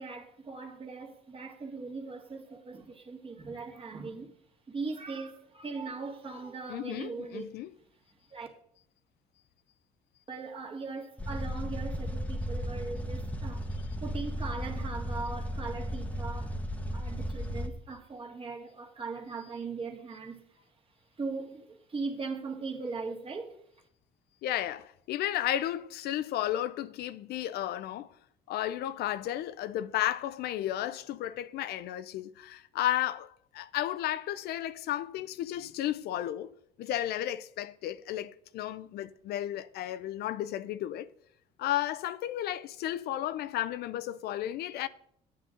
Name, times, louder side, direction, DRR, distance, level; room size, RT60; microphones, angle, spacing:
voice 1, 0.0-4.3 4.7-7.4 8.3-8.5 10.3-13.6 14.0-16.5 16.9-20.4 21.2-23.6, right 4 dB, 35° right, 1.7 m, -39 dB
voice 2, 6.7-7.7 24.4-28.2 28.5-36.5 36.8-41.1 41.6-44.9, left 12 dB, 70° left, 0.5 m, -33 dB
sound 1, 11.2-17.7, equal, 10° left, 0.9 m, -35 dB
9.4 x 9.2 x 3.7 m
cardioid pair, 110°, 17 cm